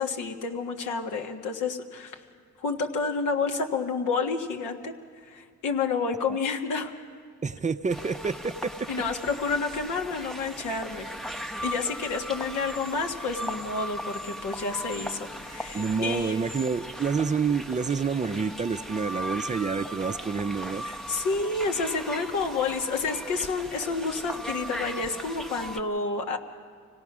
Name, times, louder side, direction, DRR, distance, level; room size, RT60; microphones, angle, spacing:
voice 1, 0.0-2.2 2.6-4.9 5.2-6.9 8.9-11.1 11.6-16.4 20.8-26.4, left 4 dB, 80° left, 3 dB, 1.7 m, -29 dB
voice 2, 7.4-8.7 15.7-20.9, right 5 dB, 25° right, 11 dB, 0.5 m, -28 dB
sound 1, 7.9-25.8, equal, ahead, 0.8 m, -38 dB
25.5 x 17.5 x 6.1 m, 2.1 s
cardioid pair, 90°, 30 cm